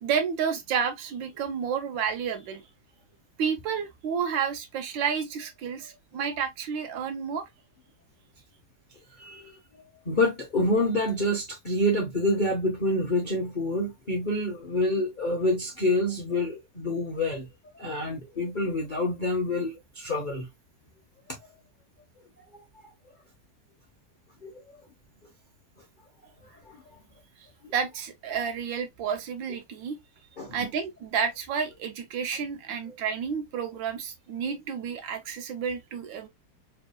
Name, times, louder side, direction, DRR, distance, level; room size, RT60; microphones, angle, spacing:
voice 1, 0.0-2.6 3.4-7.5 27.7-30.0 30.5-36.3, right 7 dB, 75° right, 1.4 m, -30 dB
voice 2, 9.2-9.5 10.1-17.5 17.8-20.5 24.4-24.5 27.6-27.7 30.4-30.6, left 1 dB, 55° left, 0.5 m, -27 dB
3.5 x 3.5 x 2.3 m
omnidirectional pair, 2.2 m